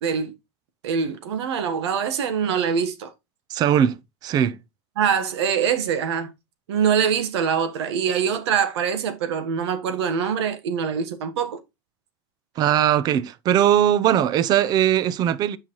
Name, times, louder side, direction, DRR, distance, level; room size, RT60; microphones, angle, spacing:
voice 1, 0.0-0.3 0.8-3.1 5.0-6.3 6.7-11.6, right 7 dB, 85° right, 1.4 m, -24 dB
voice 2, 3.5-4.6 12.6-15.6, right 10 dB, 30° right, 0.5 m, -20 dB
8.7 x 5.6 x 3.1 m
supercardioid pair, 155°, 14 cm